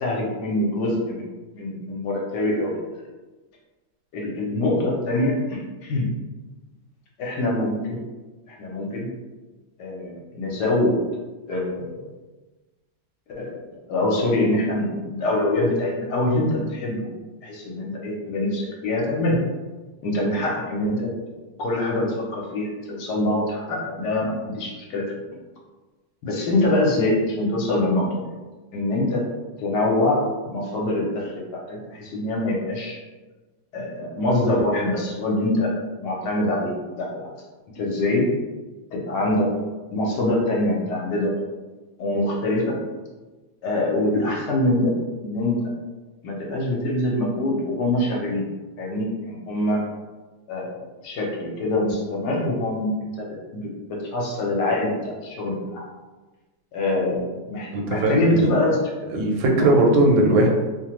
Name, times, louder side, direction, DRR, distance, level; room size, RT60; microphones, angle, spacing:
voice 1, 0.0-1.3 1.5-2.7 4.1-6.1 7.2-8.0 8.5-9.1 9.8-10.9 11.5-12.0 13.4-13.6 13.9-17.1 17.4-19.4 20.0-21.1 21.6-25.1 26.2-28.3 28.7-29.2 29.6-33.0 33.7-35.7 36.0-37.3 37.7-38.3 38.9-39.5 39.9-41.4 42.0-42.8 43.6-44.9 45.2-45.7 46.2-48.4 48.8-49.8 50.5-53.3 53.5-53.6 53.9-55.9 56.7-58.8 59.6-59.8, left 1 dB, 70° left, -2 dB, 1.1 m, -24 dB
voice 2, 57.7-58.5 59.1-60.5, right 1 dB, 90° right, 1 dB, 1.3 m, -18 dB
3.0 x 2.1 x 2.9 m, 1.2 s
omnidirectional pair, 2.0 m